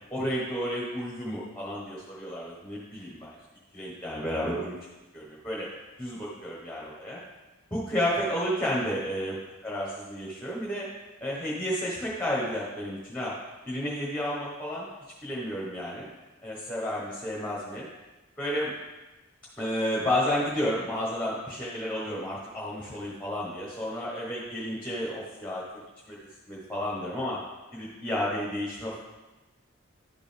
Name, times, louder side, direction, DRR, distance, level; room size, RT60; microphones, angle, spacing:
voice 1, 0.1-3.3 3.7-4.8 5.1-5.7 6.0-7.2 7.7-9.3 9.6-10.8 11.2-13.3 13.7-14.8 15.2-16.1 16.4-17.9 18.4-18.7 19.6-25.6 26.1-26.2 26.5-27.4 27.7-29.0, equal, 5° left, -5 dB, 1.3 m, -31 dB
11.0 x 5.1 x 3.5 m, 1.1 s
head